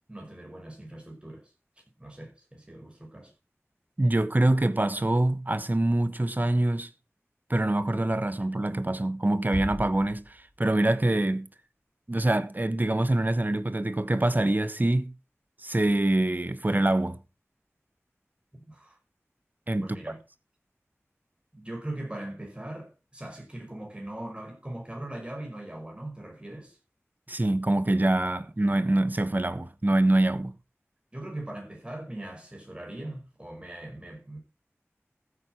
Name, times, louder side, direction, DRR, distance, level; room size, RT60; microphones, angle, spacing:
voice 1, 0.1-3.3 18.5-19.0 19.8-20.2 21.5-26.8 31.1-34.4, right 1 dB, 20° right, 5.7 m, -40 dB
voice 2, 4.0-6.9 7.5-11.5 12.1-15.1 15.6-17.2 19.7-19.9 27.3-30.5, right 1 dB, 35° right, 1.2 m, -25 dB
Bass drum, 9.5-10.9, equal, 5° left, 3.0 m, -38 dB
14.5 x 8.7 x 4.6 m
wide cardioid pair, 55°, 5 cm